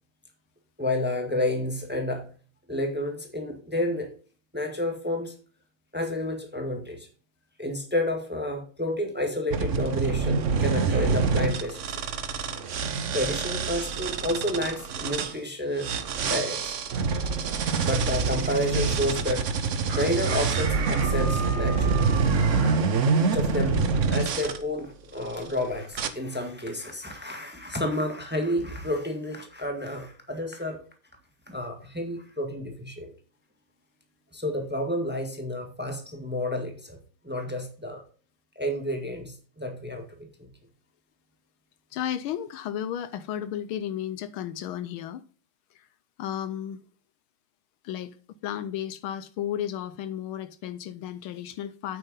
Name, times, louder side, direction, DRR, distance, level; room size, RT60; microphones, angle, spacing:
voice 1, 0.8-2.3 2.7-4.1 4.5-5.3 5.9-7.1 7.6-11.8 13.1-15.9 16.2-16.7 17.7-19.5 19.9-22.1 23.2-23.8 24.1-30.8 31.5-33.1 34.3-37.0 37.2-38.0 38.5-40.3, left 1 dB, 5° right, 1.4 m, -30 dB
sound 1, 9.5-15.3 15.8-24.6 25.2-25.5 25.9-26.1, right 5 dB, 60° right, 0.8 m, -26 dB
Chicken rooster, 19.9-22.8, right 4 dB, 75° right, 2.8 m, -35 dB
voice 2, 23.5-23.9 41.9-45.2 45.7-45.9 46.2-46.8 47.8-48.2 48.4-52.0, left 10 dB, 75° left, 1.4 m, -33 dB
9.0 x 8.2 x 3.8 m
omnidirectional pair, 2.4 m